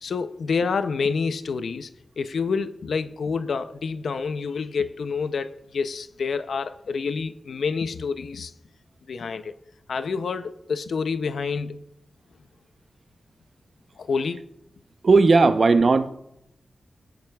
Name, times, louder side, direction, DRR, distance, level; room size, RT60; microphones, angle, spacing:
voice 1, 0.0-1.9 2.2-8.5 9.1-9.5 9.9-11.8 14.0-14.4, left 5 dB, 85° left, 11 dB, 0.5 m, -28 dB
voice 2, 15.0-16.1, right 3 dB, 55° right, 10 dB, 0.7 m, -16 dB
18.0 x 10.5 x 2.3 m, 0.79 s
wide cardioid pair, 80°, 0 cm